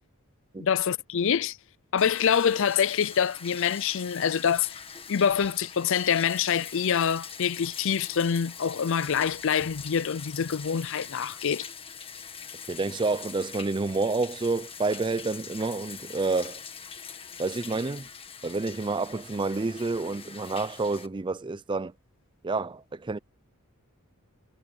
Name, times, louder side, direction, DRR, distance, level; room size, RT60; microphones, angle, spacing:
voice 1, 0.6-1.6 1.9-4.8 5.1-11.7, left 7 dB, 60° left, 0.5 m, -25 dB
Bathtub (filling or washing), 2.0-21.1, left 6 dB, 25° left, 1.6 m, -43 dB
voice 2, 12.7-16.6 17.4-18.1 18.4-21.9 22.4-23.2, right 3 dB, 20° right, 0.4 m, -29 dB
head